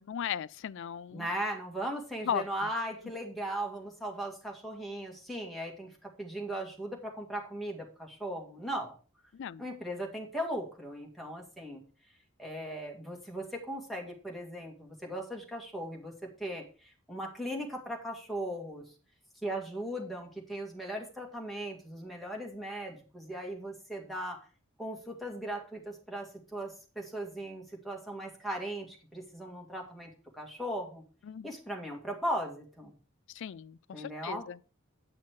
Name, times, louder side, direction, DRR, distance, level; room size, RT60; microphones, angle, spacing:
voice 1, 0.0-1.3 2.2-2.7 9.3-9.7 31.2-31.5 33.3-34.6, left 8 dB, 60° left, 0.4 m, -37 dB
voice 2, 1.1-9.0 9.6-11.8 12.4-18.9 19.4-24.4 24.8-31.0 31.4-32.9 33.9-34.5, right 1 dB, ahead, 2.0 m, -38 dB
9.6 x 5.9 x 4.6 m
head